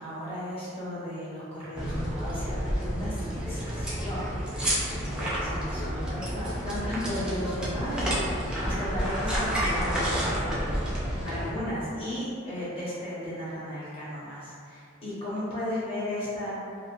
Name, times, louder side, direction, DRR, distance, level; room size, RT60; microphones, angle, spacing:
voice 1, 0.0-16.5, equal, 30° left, -10 dB, 0.9 m, -35 dB
sound 1, 1.7-11.5, equal, 5° right, 0.4 m, -30 dB
2.8 x 2.2 x 2.6 m, 2.3 s
head